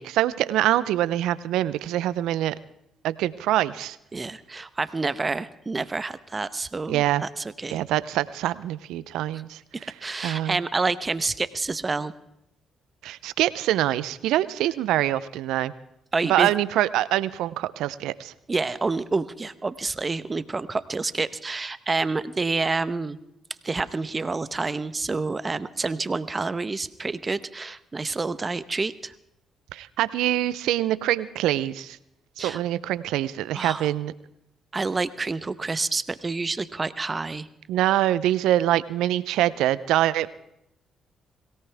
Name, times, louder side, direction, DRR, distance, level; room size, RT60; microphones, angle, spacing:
voice 1, 0.0-2.6 3.0-4.0 6.9-7.2 7.7-9.9 10.2-10.6 13.0-15.7 16.2-18.3 29.7-32.0 32.4-34.1 37.7-40.3, right 13 dB, 80° right, 17 dB, 0.6 m, -24 dB
voice 2, 4.1-7.8 10.0-12.1 16.1-16.5 18.5-23.2 23.6-29.1 32.4-32.6 33.5-33.9 34.7-37.5, right 3 dB, 30° right, 14 dB, 1.0 m, -28 dB
23.0 x 17.5 x 3.5 m, 0.81 s
supercardioid pair, 60°, 0 cm